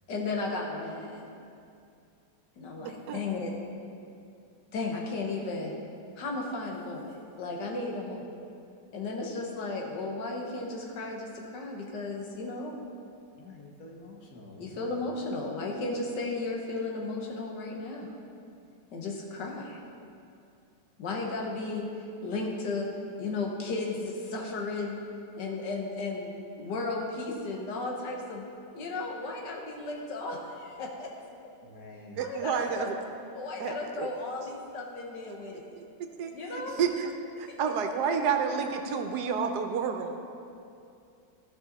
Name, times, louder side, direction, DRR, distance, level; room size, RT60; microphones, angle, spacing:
voice 1, 0.1-1.2 2.6-3.5 4.7-5.7 6.2-8.3 8.9-12.8 14.6-18.1 18.9-19.8 21.0-21.9 22.2-22.9 23.2-25.0 25.4-26.3 26.6-28.4 28.7-31.1 32.2-32.9 33.3-35.7 36.2-36.8 37.4-37.6, left 3 dB, 80° left, 0 dB, 1.8 m, -34 dB
voice 2, 2.8-3.2 32.2-33.0 33.6-34.1 35.8-35.9 36.2-37.1 37.4-40.2, right 6 dB, 75° right, 6 dB, 1.2 m, -30 dB
voice 3, 13.4-14.9 31.6-32.3, left 2 dB, 55° left, -1 dB, 1.6 m, -48 dB
14.0 x 5.5 x 4.0 m, 2.5 s
omnidirectional pair, 1.8 m